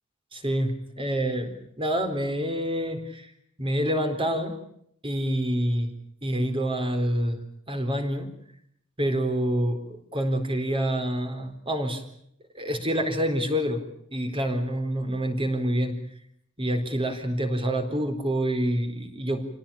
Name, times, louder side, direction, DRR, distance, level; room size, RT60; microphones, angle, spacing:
voice 1, 0.3-3.3 3.6-4.6 5.0-5.9 6.2-7.4 7.7-8.3 9.0-12.0 12.5-13.8 14.1-16.0 16.6-19.4, equal, 25° right, 7 dB, 4.2 m, -27 dB
27.5 x 18.5 x 8.7 m, 0.71 s
head